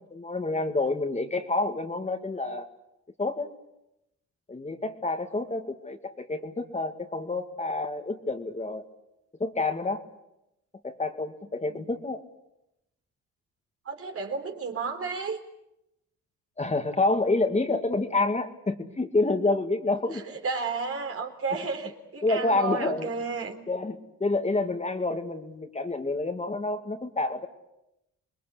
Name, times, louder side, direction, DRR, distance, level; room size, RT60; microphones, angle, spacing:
voice 1, 0.1-2.7 3.2-3.5 4.5-8.8 9.4-10.0 10.8-12.2 16.6-20.2 22.2-23.1 23.7-27.5, left 2 dB, 20° left, 5 dB, 2.4 m, -28 dB
voice 2, 13.9-15.4 20.1-23.5, right 4 dB, 50° right, 5 dB, 3.8 m, -32 dB
27.5 x 20.5 x 8.6 m, 0.87 s
cardioid pair, 90°, 30 cm